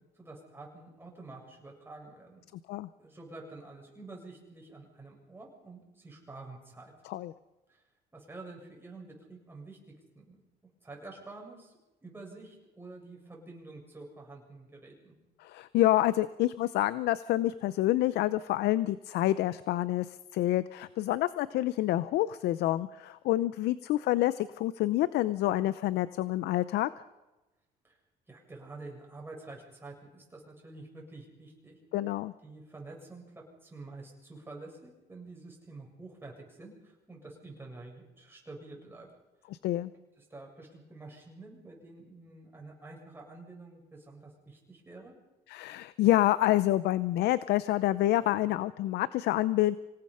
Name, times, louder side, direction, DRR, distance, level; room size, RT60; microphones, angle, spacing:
voice 1, 0.2-2.4 3.0-6.9 7.7-7.8 8.1-9.8 10.1-10.4 10.8-11.7 12.0-15.1 27.8-28.0 28.3-31.8 32.4-39.1 40.2-45.1, right 3 dB, 15° right, -1 dB, 7.5 m, -48 dB
voice 2, 15.4-26.9 31.9-32.3 39.6-39.9 45.5-49.8, left 15 dB, 80° left, 16 dB, 0.7 m, -27 dB
26.0 x 18.0 x 5.6 m, 1.1 s
cardioid pair, 110°, 17 cm